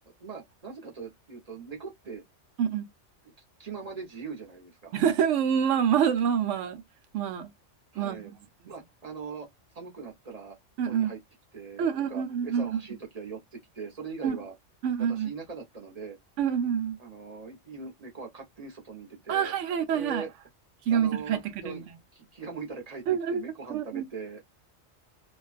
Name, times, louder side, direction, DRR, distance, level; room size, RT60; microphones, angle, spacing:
voice 1, 0.2-2.2 3.6-4.9 7.9-8.3 8.7-9.5 9.7-10.6 10.8-11.2 11.5-14.5 15.1-16.2 17.0-19.5 19.9-20.3 20.9-21.8 22.1-23.0 23.3-24.4, right 5 dB, 35° right, 0.8 m, -41 dB
voice 2, 4.9-6.8 7.1-7.5 8.0-8.3 10.8-11.1 11.8-12.8 14.2-14.4 14.8-15.3 16.4-17.0 19.3-20.2 20.9-21.8 23.1-23.4 23.7-24.1, right 8 dB, 80° right, 0.9 m, -26 dB
2.5 x 2.2 x 2.4 m
omnidirectional pair, 1.3 m